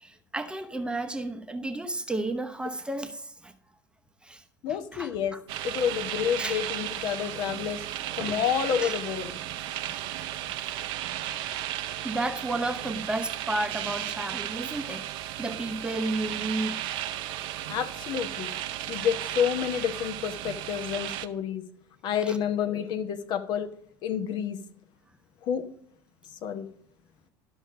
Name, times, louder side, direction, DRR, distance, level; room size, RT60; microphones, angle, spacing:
voice 1, 0.0-3.5 4.2-4.4 4.9-5.1 6.4-6.6 8.2-8.4 8.8-8.9 12.0-15.1 15.4-16.8 22.2-22.4, right 2 dB, 10° right, 0.8 m, -32 dB
voice 2, 4.6-5.3 5.6-7.9 8.2-9.4 17.7-18.5 18.9-21.6 22.0-23.7 24.0-24.6 25.4-25.7 26.4-26.7, left 8 dB, 45° left, 0.9 m, -29 dB
sound 1, 5.5-21.3, right 12 dB, 50° right, 0.6 m, -35 dB
12.0 x 6.4 x 5.0 m
figure-of-eight pair, 70°, 11 cm